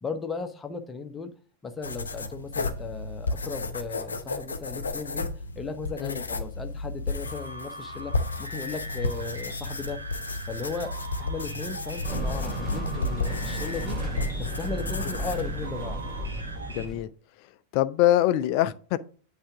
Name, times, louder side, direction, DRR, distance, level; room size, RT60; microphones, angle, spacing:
voice 1, 0.0-1.3 1.6-5.3 5.5-8.1 8.4-10.0 10.4-10.9 11.2-14.0 14.6-16.0 16.3-16.5, left 4 dB, 15° left, 1.0 m, -36 dB
sound 1, 1.8-16.7, left 3 dB, 75° left, 0.8 m, -34 dB
sound 2, 7.3-16.9, equal, 75° right, 1.3 m, -39 dB
sound 3, 12.0-17.0, right 1 dB, 15° right, 2.7 m, -33 dB
voice 2, 16.7-17.1 17.7-19.0, left 14 dB, 45° left, 0.5 m, -23 dB
8.5 x 3.5 x 5.9 m
figure-of-eight pair, 90°, 0 cm